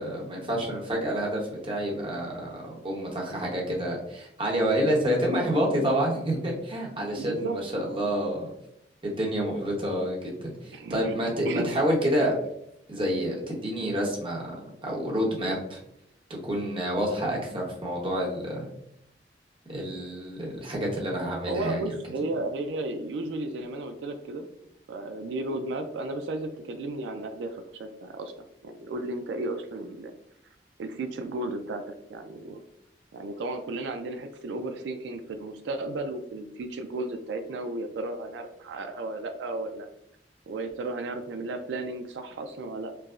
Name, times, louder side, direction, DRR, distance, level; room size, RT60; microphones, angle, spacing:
voice 1, 0.0-8.5 9.0-12.3 12.9-14.4 14.8-15.8 16.4-18.7 19.7-21.8, equal, 30° right, -2 dB, 0.9 m, -28 dB
voice 2, 7.2-7.6 7.8-8.1 10.7-11.2 11.4-11.7 21.5-24.5 24.9-28.3 28.6-30.1 30.8-32.6 33.1-39.9 40.5-42.9, right 2 dB, 90° right, 6 dB, 0.3 m, -34 dB
4.5 x 2.0 x 2.4 m, 0.75 s
head